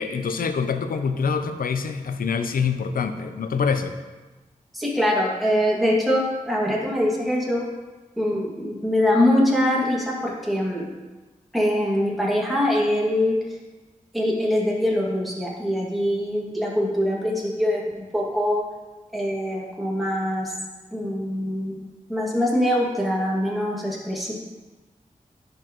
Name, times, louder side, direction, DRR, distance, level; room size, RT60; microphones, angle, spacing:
voice 1, 0.0-4.0, left 5 dB, 85° left, 9 dB, 0.5 m, -25 dB
voice 2, 4.7-7.6 8.2-10.9 11.5-13.4 14.1-18.6 19.1-20.5 20.9-21.7 22.1-24.3, left 1 dB, ahead, -5 dB, 2.1 m, -23 dB
10.5 x 4.5 x 3.0 m, 1.2 s
cardioid pair, 55°, 14 cm